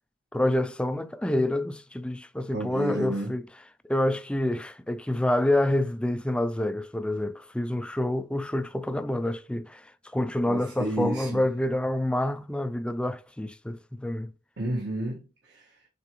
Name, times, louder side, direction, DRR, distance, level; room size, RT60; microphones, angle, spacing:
voice 1, 0.3-3.4 3.8-14.3, left 1 dB, 5° left, 0.3 m, -27 dB
voice 2, 2.5-3.3 10.5-11.4 14.6-15.7, right 1 dB, 60° right, 1.5 m, -31 dB
6.9 x 4.7 x 3.0 m
head